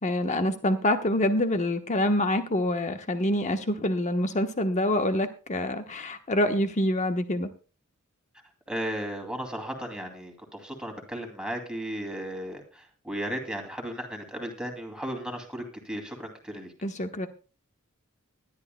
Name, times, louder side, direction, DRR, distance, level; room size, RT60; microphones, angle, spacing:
voice 1, 0.0-7.5 16.8-17.3, left 1 dB, 35° left, 1.1 m, -26 dB
voice 2, 8.7-16.7, equal, 5° right, 2.5 m, -35 dB
20.0 x 11.0 x 2.2 m
head